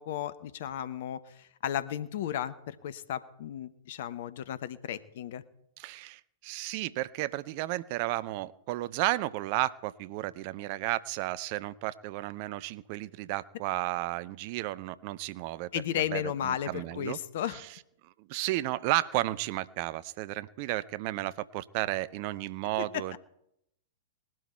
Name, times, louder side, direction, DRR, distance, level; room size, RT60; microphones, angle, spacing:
voice 1, 0.0-5.4 15.7-17.6 23.1-23.2, left 10 dB, 55° left, 15 dB, 1.0 m, -34 dB
voice 2, 5.8-15.7 16.1-17.2 17.5-17.6 18.0-23.2, right 17 dB, 45° right, 17 dB, 0.6 m, -33 dB
20.0 x 12.5 x 4.4 m, 0.80 s
figure-of-eight pair, 100°, 0 cm